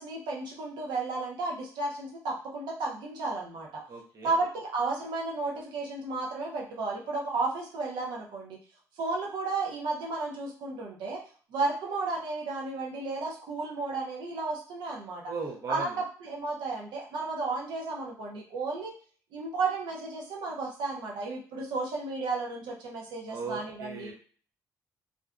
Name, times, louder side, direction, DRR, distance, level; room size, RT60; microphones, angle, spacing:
voice 1, 0.0-3.7 4.2-8.6 9.0-11.2 11.5-15.2 15.7-15.9 16.2-19.0 19.3-24.1, right 3 dB, 80° right, -1 dB, 0.6 m, -33 dB
voice 2, 3.9-4.3 15.3-16.0 23.3-24.1, right 4 dB, 45° right, 0 dB, 0.6 m, -37 dB
2.4 x 2.2 x 2.4 m, 0.43 s
cardioid pair, 100°, 8 cm